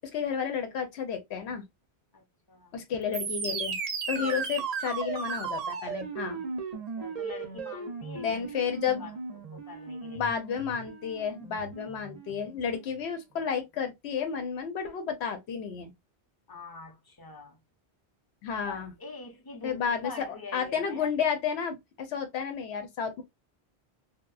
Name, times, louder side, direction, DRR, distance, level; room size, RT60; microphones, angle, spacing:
voice 1, 0.0-1.6 2.7-3.8 4.1-6.4 8.1-9.1 10.1-15.9 18.4-18.9 19.6-20.1 20.5-23.2, left 7 dB, 90° left, 0.9 m, -31 dB
voice 2, 2.1-2.7 4.1-4.5 6.7-8.4 8.9-10.4 16.5-17.6 18.7-21.1, left 4 dB, 25° left, 0.5 m, -45 dB
sound 1, 3.1-13.0, right 5 dB, 50° right, 0.5 m, -36 dB
2.8 x 2.1 x 2.3 m
omnidirectional pair, 1.1 m